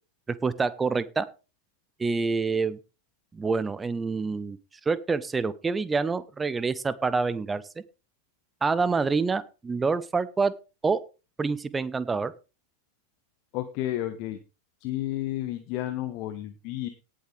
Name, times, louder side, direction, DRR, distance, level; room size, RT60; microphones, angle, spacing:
voice 1, 0.4-1.3 2.0-2.8 3.3-4.6 4.9-7.6 8.6-10.5 10.8-11.0 11.4-12.3, right 4 dB, 15° right, 17 dB, 1.0 m, -26 dB
voice 2, 13.5-14.4 14.8-16.9, left 14 dB, 40° left, 8 dB, 1.4 m, -31 dB
18.0 x 7.8 x 3.5 m, 0.31 s
figure-of-eight pair, 90°, 0 cm